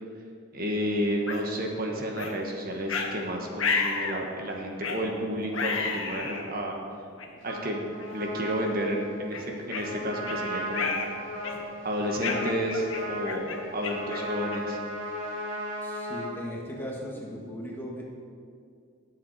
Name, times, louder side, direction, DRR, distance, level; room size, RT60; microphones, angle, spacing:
voice 1, 0.5-6.8 7.4-7.8 8.1-10.9 11.8-14.8, equal, 45° right, 1 dB, 1.3 m, -31 dB
sound 1, 1.3-1.4 2.2-2.3 2.9-3.1 3.6-4.2 4.8-5.0 5.5-6.5 7.2-7.3 8.0-8.2 8.6-8.8 9.3-10.4 10.7-11.1 11.4-11.8 12.2-14.8, left 4 dB, 65° left, 1.4 m, -31 dB
Trumpet, 7.4-16.3, equal, 60° right, 3.2 m, -36 dB
voice 2, 15.8-18.0, equal, 10° left, -2 dB, 1.7 m, -37 dB
19.5 x 7.6 x 4.2 m, 2.3 s
head